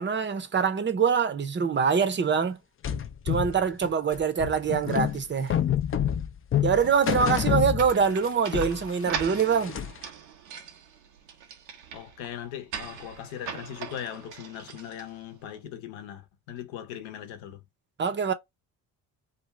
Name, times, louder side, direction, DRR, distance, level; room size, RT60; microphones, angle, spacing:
voice 1, 0.0-2.6 3.3-5.6 6.6-9.7 18.0-18.3, right 6 dB, 25° right, 0.6 m, -24 dB
sound 1, 2.8-8.3 8.5-10.1, left 9 dB, 30° left, 0.4 m, -28 dB
sound 2, 7.8-15.4, right 7 dB, 85° right, 0.8 m, -40 dB
voice 2, 11.9-17.6, left 10 dB, 70° left, 0.9 m, -39 dB
2.6 x 2.4 x 3.1 m
hypercardioid pair, 50°, 49 cm